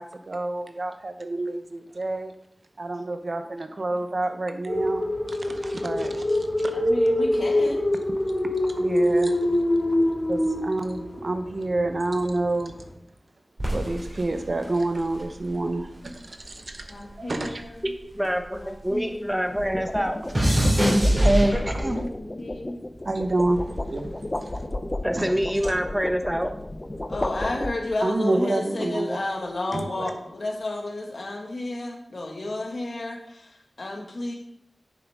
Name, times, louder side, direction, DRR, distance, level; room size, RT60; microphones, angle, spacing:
voice 1, 0.0-2.3 2.8-6.8 8.6-9.4 10.3-12.7 13.7-17.6 21.1-22.1 23.0-24.5 25.1-25.3 25.6-25.7 28.0-29.2 29.7-30.0, right 2 dB, 55° right, 7 dB, 0.8 m, -28 dB
sound 1, 4.7-12.9, left 1 dB, 45° left, 2.3 m, -25 dB
voice 2, 6.7-7.8 16.9-17.9 18.5-19.3 22.0-22.8 27.1-34.4, left 2 dB, 65° left, 1 dB, 1.7 m, -32 dB
sound 2, 13.6-16.1 16.4-19.0 19.3-22.1 22.8-23.2, equal, 35° right, 3.2 m, -25 dB
sound 3, 13.8-14.1 19.3-28.2, left 1 dB, 30° left, 0.6 m, -34 dB
voice 3, 17.8-20.2 21.8-22.0 25.0-26.5, equal, 5° right, 5 dB, 1.0 m, -26 dB
9.2 x 7.0 x 3.6 m, 0.75 s
wide cardioid pair, 80°, 0 cm